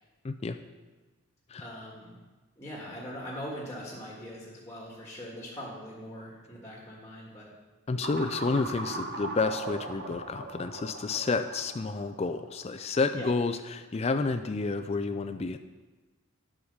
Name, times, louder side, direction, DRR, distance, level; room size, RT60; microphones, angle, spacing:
voice 1, 0.2-0.6 1.5-1.7 7.9-15.6, left 3 dB, 30° left, 8 dB, 0.3 m, -30 dB
voice 2, 1.6-2.1 2.6-7.5 13.1-13.3, equal, 15° left, -4 dB, 1.5 m, -41 dB
sound 1, 8.0-13.1, right 2 dB, 50° right, 1.0 m, -39 dB
9.9 x 5.0 x 6.5 m, 1.2 s
head